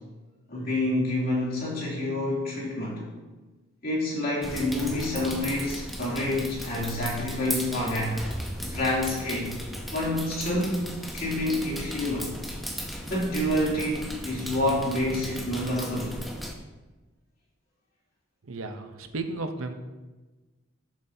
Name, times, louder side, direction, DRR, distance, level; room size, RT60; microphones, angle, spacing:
voice 1, 0.5-3.1 3.8-8.2 8.6-9.5 9.9-12.3 13.1-16.2, left 1 dB, 45° left, -6 dB, 2.9 m, -28 dB
sound 1, 4.4-16.5, equal, ahead, 0.8 m, -36 dB
voice 2, 18.4-19.7, right 3 dB, 90° right, 7 dB, 0.8 m, -34 dB
12.0 x 7.3 x 2.8 m, 1.2 s
head